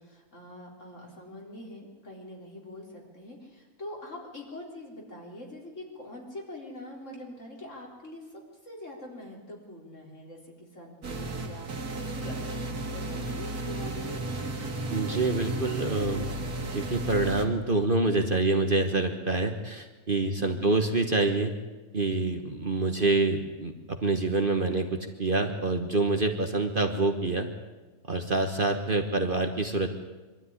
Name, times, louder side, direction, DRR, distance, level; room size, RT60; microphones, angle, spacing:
voice 1, 0.0-14.2 20.2-20.6, left 1 dB, 55° left, -1 dB, 4.3 m, -44 dB
sound 1, 11.0-17.5, right 2 dB, 85° right, 2.3 m, -34 dB
voice 2, 14.9-16.3 16.6-21.5 21.9-27.5 28.1-29.9, right 2 dB, 35° right, 5 dB, 1.4 m, -26 dB
23.5 x 13.0 x 9.7 m, 1.2 s
omnidirectional pair, 1.6 m